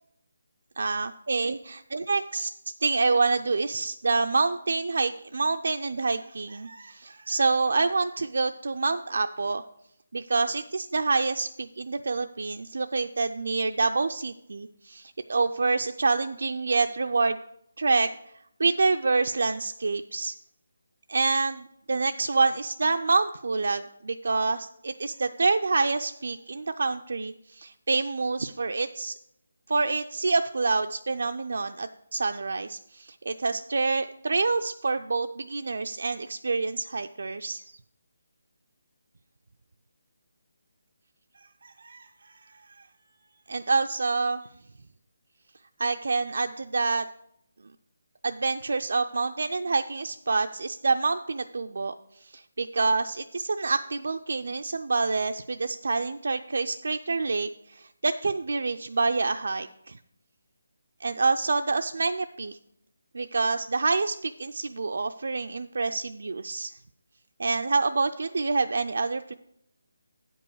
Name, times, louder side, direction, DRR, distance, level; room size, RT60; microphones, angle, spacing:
voice 1, 0.8-1.5 2.1-2.5 2.8-9.6 10.1-17.4 17.8-18.1 18.6-20.3 21.1-29.1 29.7-37.8 41.6-42.6 43.5-44.4 45.8-47.0 48.2-51.9 52.2-60.0 61.0-62.6 63.1-66.7 67.4-69.3, right 3 dB, 65° right, 7 dB, 0.4 m, -27 dB
9.2 x 5.3 x 6.2 m, 0.75 s
hypercardioid pair, 175°, 0 cm